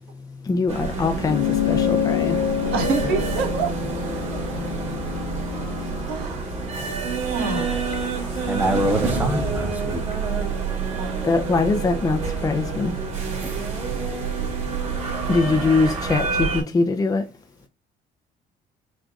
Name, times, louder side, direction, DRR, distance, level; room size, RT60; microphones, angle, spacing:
voice 1, 0.4-2.4 7.3-8.5 11.2-13.0 15.3-17.3, left 4 dB, 20° left, 0.6 m, -23 dB
sound 1, 0.7-16.6, right 4 dB, 40° right, 2.4 m, -27 dB
sound 2, 1.2-6.0, left 11 dB, 80° left, 0.5 m, -27 dB
voice 2, 2.7-3.7 6.0-6.5 7.3-7.8 11.0-11.3, right 5 dB, 80° right, 1.5 m, -27 dB
voice 3, 8.4-10.0 13.4-13.6, right 1 dB, 10° right, 1.2 m, -25 dB
6.1 x 3.3 x 2.5 m
cardioid pair, 110°, 17 cm